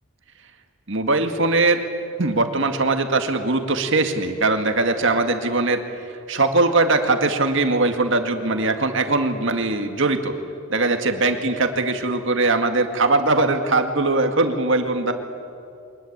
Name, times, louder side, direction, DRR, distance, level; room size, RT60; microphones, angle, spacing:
voice 1, 0.9-1.8 2.2-5.8 6.3-10.3 10.7-15.1, right 3 dB, 60° right, 6 dB, 2.0 m, -21 dB
23.0 x 20.5 x 8.8 m, 2.6 s
head